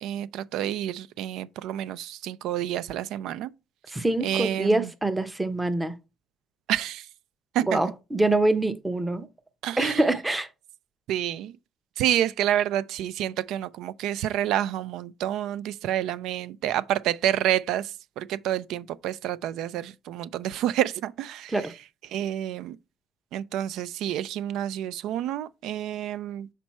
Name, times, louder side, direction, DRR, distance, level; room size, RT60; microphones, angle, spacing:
voice 1, 0.0-3.5 4.2-4.9 6.7-7.1 7.5-7.8 9.6-10.0 11.1-11.6 12.0-21.5 22.1-22.8 23.3-26.5, right 11 dB, 75° right, 0.3 m, -28 dB
voice 2, 3.9-6.0 7.6-9.3 9.8-10.5 21.5-21.7, right 2 dB, 10° right, 0.6 m, -25 dB
5.9 x 4.4 x 4.2 m
cardioid pair, 155°, 0 cm